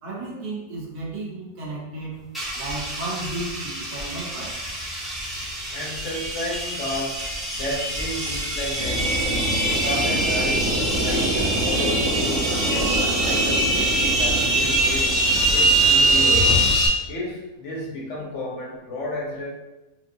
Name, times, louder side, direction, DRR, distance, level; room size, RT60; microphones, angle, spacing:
voice 1, 0.0-2.2 2.5-4.6 16.2-16.5, right 2 dB, 85° right, -4 dB, 1.6 m, -33 dB
sound 1, 2.3-16.9, right 1 dB, ahead, 0.6 m, -23 dB
voice 2, 5.7-10.7 11.0-15.1 15.5-16.7 17.1-19.5, left 1 dB, 60° left, -3 dB, 0.9 m, -32 dB
sound 2, 8.8-16.7, right 1 dB, 65° right, 1.0 m, -28 dB
4.5 x 2.6 x 2.6 m, 1.0 s
omnidirectional pair, 1.6 m